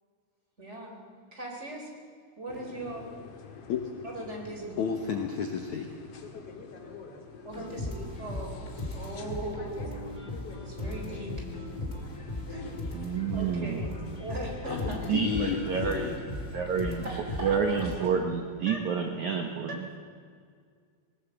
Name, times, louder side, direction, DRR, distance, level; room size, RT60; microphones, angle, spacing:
voice 1, 0.6-1.0 1.3-1.9 2.4-3.0 4.0-4.8 7.4-8.5 8.9-10.0 10.6-11.3 12.5-12.6 12.9-13.0 13.3-15.0 15.4-15.6 15.9-16.1 17.0-18.1 18.7-18.8, right 1 dB, 15° right, 0 dB, 3.3 m, -39 dB
sound 1, 2.5-18.1, left 5 dB, 55° left, 1.8 m, -47 dB
voice 2, 4.8-5.9 14.6-16.2, left 7 dB, 85° left, 4 dB, 1.6 m, -32 dB
sound 2, 7.5-18.0, left 2 dB, 15° left, 1.8 m, -38 dB
voice 3, 12.9-13.9 15.1-16.2 16.5-17.1 17.4-19.8, right 6 dB, 85° right, 4 dB, 1.6 m, -29 dB
20.0 x 19.0 x 8.0 m, 2.1 s
omnidirectional pair, 5.3 m